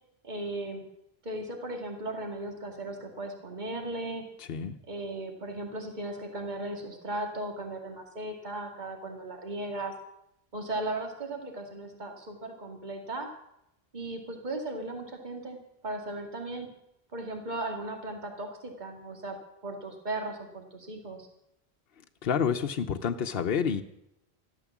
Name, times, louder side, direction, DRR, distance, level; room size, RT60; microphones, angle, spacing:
voice 1, 0.2-0.8 1.2-4.2 4.9-9.9 10.5-13.3 13.9-16.7 17.1-19.4 19.6-21.3, right 2 dB, 45° right, 3 dB, 2.4 m, -37 dB
voice 2, 22.2-23.8, left 7 dB, 65° left, 5 dB, 1.0 m, -28 dB
13.5 x 12.5 x 7.3 m, 0.82 s
omnidirectional pair, 1.1 m